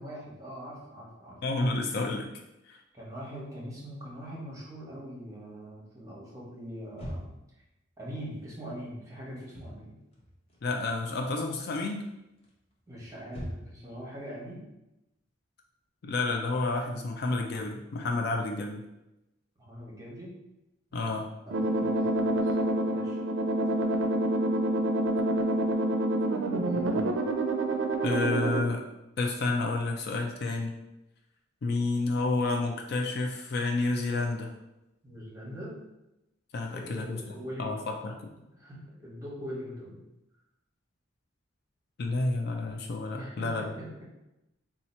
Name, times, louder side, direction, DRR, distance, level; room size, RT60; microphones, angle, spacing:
voice 1, 0.0-1.4 2.9-7.3 8.0-9.9 12.9-14.6 19.7-20.3 20.9-23.2 26.6-27.2 35.0-35.8 36.7-37.9 38.3-40.0 43.1-44.0, equal, 15° right, -5 dB, 1.0 m, -42 dB
voice 2, 1.4-2.3 2.7-2.8 10.6-12.0 16.0-18.8 20.9-21.3 28.0-28.8 29.2-30.7 31.6-34.5 36.5-38.2 42.0-43.7, left 3 dB, 55° left, 2 dB, 0.4 m, -30 dB
sound 1, 6.9-7.6 9.3-9.8 10.1-11.1 11.4-11.8 12.4-13.9, equal, 30° left, 0.7 m, -41 dB
sound 2, 21.5-28.6, right 1 dB, 85° right, 0.4 m, -27 dB
2.8 x 2.4 x 4.1 m, 0.92 s
head